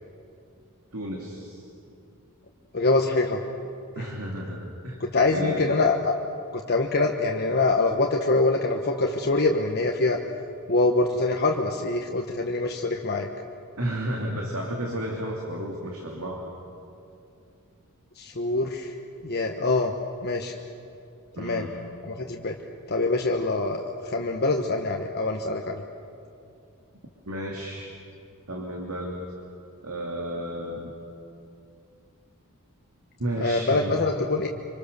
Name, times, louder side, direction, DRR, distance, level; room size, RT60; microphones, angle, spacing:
voice 1, 0.9-1.6 4.0-5.0 5.3-5.8 13.8-16.5 21.4-21.7 27.3-27.9 28.5-29.2 29.8-30.9 33.2-34.0, equal, 75° right, -1 dB, 2.8 m, -32 dB
voice 2, 2.7-3.4 4.0-4.1 5.0-6.2 6.5-10.2 10.7-13.3 18.2-18.9 19.2-19.9 20.2-20.5 21.4-21.6 22.0-22.5 22.9-25.8 33.4-34.5, left 3 dB, 45° left, 2 dB, 1.2 m, -24 dB
26.0 x 25.5 x 6.8 m, 2.6 s
head